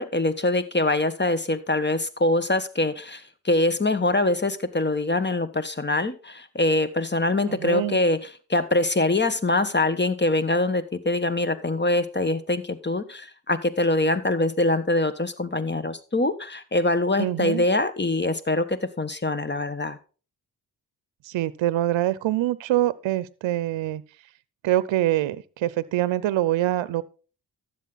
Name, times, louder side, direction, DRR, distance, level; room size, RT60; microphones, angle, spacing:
voice 1, 0.0-20.0, left 2 dB, 25° left, 1.3 m, -24 dB
voice 2, 7.5-8.0 17.2-17.6 21.2-24.0 24.6-27.0, right 14 dB, 75° right, 0.7 m, -24 dB
12.5 x 7.6 x 4.1 m
supercardioid pair, 45°, 46 cm